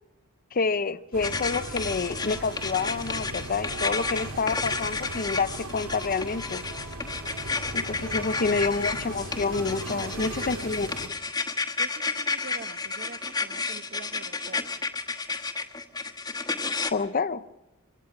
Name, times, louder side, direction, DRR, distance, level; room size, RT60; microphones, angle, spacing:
voice 1, 0.5-6.6 7.7-11.1 16.9-17.4, left 4 dB, 40° left, 0.6 m, -28 dB
sound 1, 1.1-11.1, right 2 dB, 80° right, 1.9 m, -38 dB
sound 2, 1.2-16.9, left 4 dB, 20° left, 1.2 m, -32 dB
voice 2, 8.0-8.4 9.8-10.9 11.8-14.7, right 4 dB, 50° right, 1.0 m, -45 dB
25.5 x 17.5 x 5.8 m
head